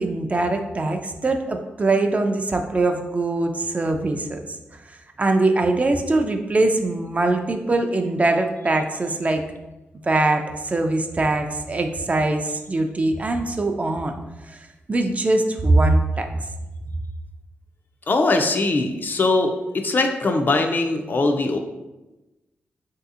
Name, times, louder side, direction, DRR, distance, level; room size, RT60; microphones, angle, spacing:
voice 1, 0.0-4.5 5.2-9.4 10.0-14.2 14.5-14.6 14.9-16.3, right 2 dB, 30° right, 5 dB, 0.3 m, -22 dB
voice 2, 18.1-21.6, left 2 dB, 45° left, 5 dB, 0.3 m, -21 dB
3.3 x 2.7 x 2.4 m, 1.0 s
cardioid pair, 65°, 4 cm